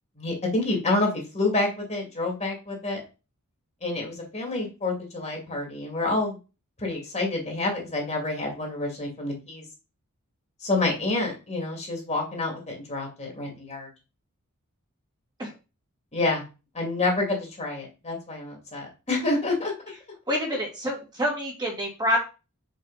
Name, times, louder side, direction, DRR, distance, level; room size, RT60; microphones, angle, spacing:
voice 1, 0.2-3.0 3.8-6.4 6.8-9.6 10.6-13.9 16.1-16.4 16.7-19.7, left 2 dB, 30° left, 0 dB, 2.4 m, -28 dB
voice 2, 20.3-22.2, equal, 20° right, -2 dB, 2.2 m, -27 dB
6.1 x 5.5 x 4.1 m, 0.31 s
head